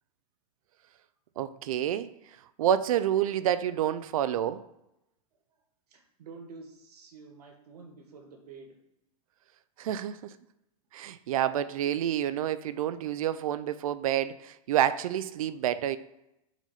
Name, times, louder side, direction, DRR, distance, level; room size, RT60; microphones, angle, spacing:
voice 1, 1.4-2.1 2.6-4.6 9.8-10.3 10.9-16.0, right 11 dB, 60° right, 15 dB, 0.5 m, -28 dB
voice 2, 5.9-8.8, right 4 dB, 80° right, 3 dB, 1.7 m, -49 dB
6.1 x 4.0 x 5.7 m, 0.87 s
supercardioid pair, 175°, 20 cm